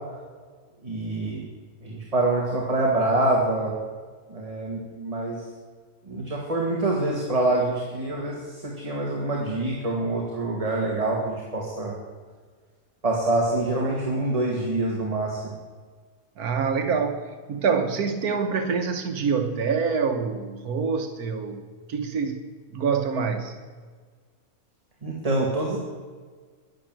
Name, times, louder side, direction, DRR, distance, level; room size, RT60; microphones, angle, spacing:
voice 1, 0.8-1.4 1.8-3.7 4.3-5.4 6.1-11.9 13.0-15.5 25.0-25.8, right 2 dB, 25° right, -2 dB, 2.0 m, -26 dB
voice 2, 16.4-17.2 17.5-22.4 22.7-23.6, right 5 dB, 80° right, 6 dB, 1.5 m, -26 dB
11.5 x 11.0 x 7.6 m, 1.5 s
omnidirectional pair, 1.6 m